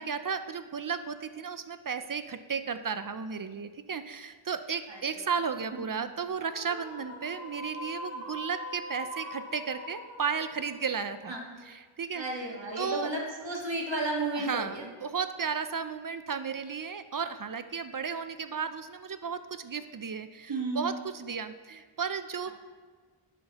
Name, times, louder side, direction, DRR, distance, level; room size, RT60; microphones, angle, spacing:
voice 1, 0.0-11.3 11.6-12.2 12.8-13.1 14.4-22.5, right 6 dB, 45° right, 10 dB, 0.4 m, -34 dB
voice 2, 4.9-5.3 5.9-6.1 11.3-11.6 12.1-14.9 20.5-21.0, right 2 dB, 60° right, -1 dB, 1.7 m, -33 dB
sound 1, 6.4-11.8, left 1 dB, 85° left, 2.7 m, -43 dB
11.0 x 7.9 x 2.9 m, 1.5 s
wide cardioid pair, 65°, 49 cm